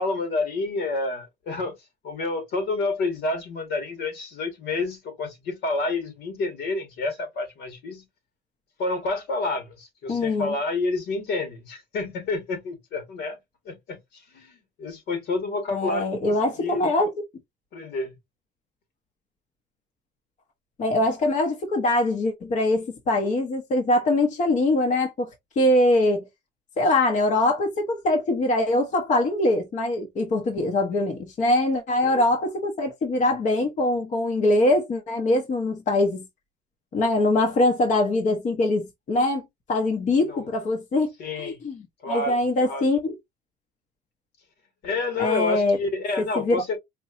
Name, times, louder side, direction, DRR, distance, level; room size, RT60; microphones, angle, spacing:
voice 1, 0.0-1.8 2.0-8.1 8.8-13.4 13.7-16.8 17.7-18.1 30.9-31.0 32.0-32.2 40.3-40.5 41.2-41.6 42.0-42.8 44.8-46.8, left 3 dB, 80° left, 1.8 m, -29 dB
voice 2, 10.1-10.5 15.7-17.1 20.8-25.3 25.6-26.2 26.8-36.2 36.9-41.1 41.4-41.7 42.1-43.2 45.2-45.8 46.4-46.6, left 2 dB, 45° left, 1.0 m, -23 dB
4.4 x 2.6 x 2.6 m
cardioid pair, 110°, 17 cm